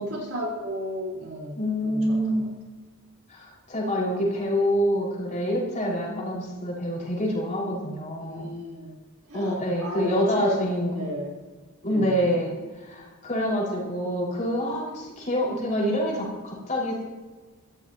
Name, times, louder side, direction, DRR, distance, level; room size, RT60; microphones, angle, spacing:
voice 1, 0.0-2.5 8.2-8.9 9.3-11.3 11.8-12.4, equal, 65° right, -3 dB, 5.4 m, -34 dB
voice 2, 1.5-2.5 3.3-8.5 9.3-11.1 11.8-12.5 12.8-17.0, equal, 35° left, -3 dB, 6.2 m, -26 dB
26.0 x 14.5 x 3.2 m, 1.3 s
head